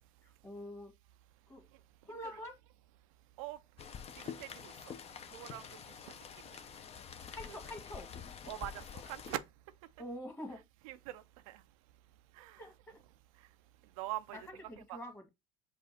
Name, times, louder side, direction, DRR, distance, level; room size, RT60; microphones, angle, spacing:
voice 1, 0.2-0.9 1.5-1.6 2.0-2.6 7.3-8.1 10.0-10.6 12.6-13.0 14.3-15.3, left 1 dB, 15° left, 1.6 m, -46 dB
Rain, 3.8-9.4, left 7 dB, 35° left, 0.7 m, -47 dB
voice 2, 4.4-4.7 5.3-5.6 7.5-7.6 8.5-8.8 9.1-9.4 10.8-11.2 12.4-12.5 14.0-14.4 14.9-15.0, right 15 dB, 85° right, 0.4 m, -41 dB
5.0 x 2.4 x 4.0 m
supercardioid pair, 85°, 17 cm